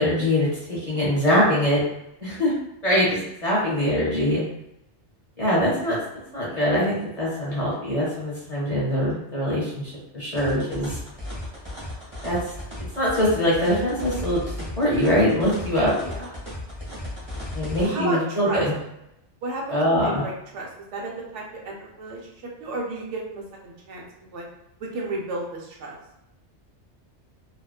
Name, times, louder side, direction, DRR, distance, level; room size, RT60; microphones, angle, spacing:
voice 1, 0.0-1.8 2.2-4.4 5.4-6.0 6.3-11.0 12.2-12.4 13.0-15.9 17.5-18.7 19.7-20.2, equal, 35° left, -7 dB, 0.8 m, -23 dB
voice 2, 0.9-1.3 15.9-16.3 17.8-18.6 19.4-22.2 22.6-24.4 24.8-26.0, right 2 dB, 90° right, -2 dB, 1.0 m, -33 dB
sound 1, 10.4-17.9, left 1 dB, 15° right, 0.9 m, -35 dB
2.4 x 2.2 x 2.3 m, 0.83 s
omnidirectional pair, 1.2 m